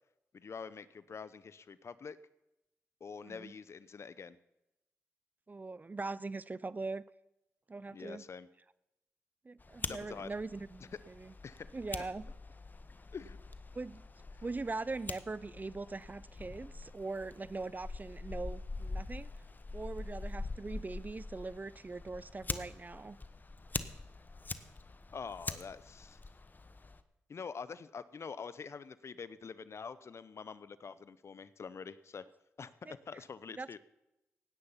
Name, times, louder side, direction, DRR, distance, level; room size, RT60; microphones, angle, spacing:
voice 1, 0.3-2.2 3.0-4.4 7.9-8.5 9.9-10.3 11.4-11.7 12.0-12.1 13.1-13.4 25.1-26.2 27.3-32.2 32.6-32.7 33.1-33.8, left 5 dB, 55° left, 0.8 m, -45 dB
voice 2, 5.5-7.0 7.7-8.3 9.4-11.3 11.7-12.3 13.7-14.1 14.4-19.3 19.7-23.2 32.8-33.0 33.5-33.8, right 3 dB, 30° right, 0.6 m, -41 dB
Fire, 9.6-27.0, left 3 dB, 35° left, 1.1 m, -44 dB
16.5 x 9.8 x 5.7 m
supercardioid pair, 45°, 5 cm